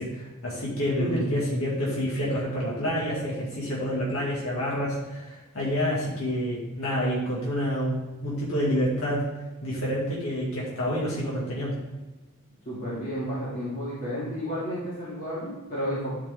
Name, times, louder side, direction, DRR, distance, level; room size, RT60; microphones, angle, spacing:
voice 1, 0.0-9.3 9.6-11.7, equal, 70° left, -6 dB, 2.1 m, -28 dB
voice 2, 1.0-1.3 12.6-16.2, equal, 40° left, -10 dB, 2.6 m, -31 dB
11.0 x 4.9 x 3.6 m, 1.1 s
head